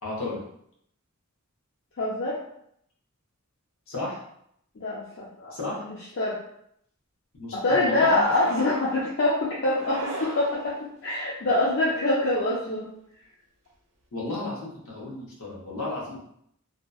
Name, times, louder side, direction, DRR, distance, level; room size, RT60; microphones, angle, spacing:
voice 1, 0.0-0.4 3.9-4.2 5.5-5.9 7.4-8.5 14.1-16.2, left 2 dB, 70° left, -4 dB, 0.8 m, -33 dB
voice 2, 2.0-2.4 4.8-5.6 5.8-6.4 7.5-10.8 11.0-12.9, left 2 dB, 55° left, -6 dB, 0.4 m, -25 dB
sound 1, 8.2-9.1 9.7-10.9, right 2 dB, 80° right, 0.6 m, -37 dB
2.7 x 2.1 x 2.2 m, 0.72 s
head